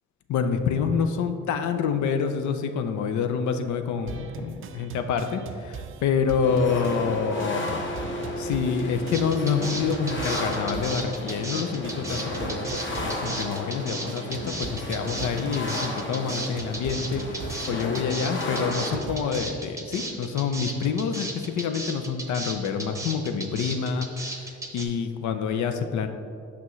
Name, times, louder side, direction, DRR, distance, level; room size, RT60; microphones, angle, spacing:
voice 1, 0.3-7.9 8.4-26.1, left 6 dB, 75° left, 8 dB, 0.5 m, -27 dB
sound 1, 4.1-19.6, right 6 dB, 45° right, 0.4 m, -41 dB
sound 2, 6.4-19.0, left 1 dB, 40° left, 1.0 m, -33 dB
sound 3, 9.1-24.8, right 2 dB, 10° right, 0.8 m, -35 dB
6.0 x 5.7 x 3.1 m, 2.4 s
cardioid pair, 90°, 30 cm